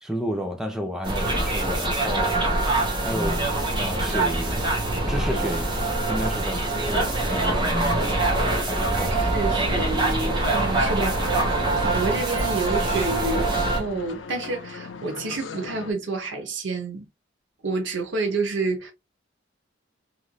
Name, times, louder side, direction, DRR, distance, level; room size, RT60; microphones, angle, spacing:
voice 1, 0.0-2.6 3.0-3.4 3.8-4.6 5.1-5.8 6.1-7.8 8.7-9.2, equal, 5° right, 0.5 m, -31 dB
sound 1, 1.0-13.8, right 2 dB, 25° right, 0.9 m, -24 dB
Car / Truck / Slam, 5.4-6.2 7.4-8.9 9.9-10.7 11.9-12.6 13.7-14.4, equal, 30° left, 0.9 m, -43 dB
voice 2, 6.5-6.9 8.9-17.0 17.6-18.9, right 3 dB, 75° right, 0.8 m, -29 dB
sound 2, 9.6-15.9, left 5 dB, 80° left, 0.5 m, -39 dB
3.1 x 2.5 x 2.2 m
head